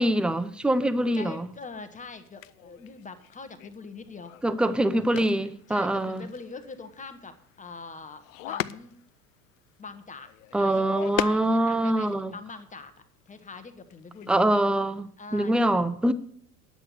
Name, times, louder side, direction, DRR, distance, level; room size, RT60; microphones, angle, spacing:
voice 1, 0.0-1.5 4.4-6.3 10.5-12.3 14.3-15.0 15.3-16.1, right 1 dB, ahead, 0.5 m, -24 dB
voice 2, 1.1-4.3 5.7-9.0 9.8-14.6 15.2-15.6, left 4 dB, 15° left, 1.2 m, -43 dB
sound 1, 1.5-1.6 2.2-12.1 12.6-12.7 13.0-13.7 13.9-14.7, left 15 dB, 60° left, 0.6 m, -39 dB
10.5 x 7.9 x 6.5 m
figure-of-eight pair, 75°, 45 cm